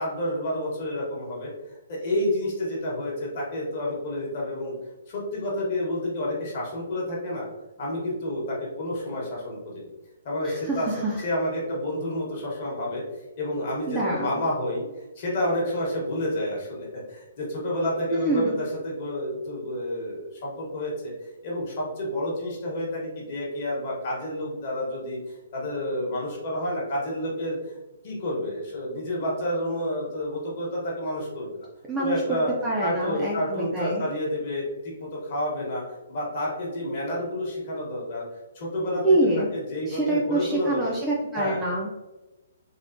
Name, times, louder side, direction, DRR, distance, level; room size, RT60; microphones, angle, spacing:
voice 1, 0.0-1.5 1.9-4.7 5.1-7.5 7.8-9.8 10.2-10.9 11.2-13.0 13.4-14.8 15.2-25.2 25.5-27.6 28.0-31.6 32.0-32.5 32.8-35.8 36.1-38.3 38.5-39.0 39.5-41.0 41.3-41.6, left 1 dB, 35° left, -4 dB, 1.0 m, -29 dB
voice 2, 10.4-11.2 13.9-14.4 18.1-18.6 31.9-34.1 39.0-39.5 39.9-41.9, right 2 dB, 10° right, -5 dB, 0.3 m, -26 dB
3.5 x 2.0 x 2.5 m, 1.0 s
hypercardioid pair, 170°, 0 cm